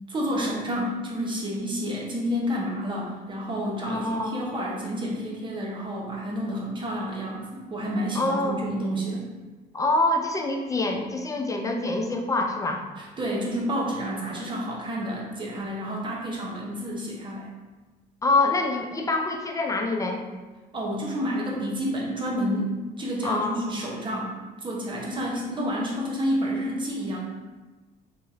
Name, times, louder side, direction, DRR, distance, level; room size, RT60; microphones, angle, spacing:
voice 1, 0.1-9.3 13.0-17.5 20.7-24.3 24.6-27.2, equal, 30° right, -3 dB, 0.9 m, -29 dB
voice 2, 3.8-4.4 8.1-8.6 9.7-12.8 18.2-20.2 23.2-23.6, left 2 dB, 20° left, 3 dB, 0.4 m, -25 dB
2.9 x 2.6 x 4.0 m, 1.2 s
cardioid pair, 110°, 17 cm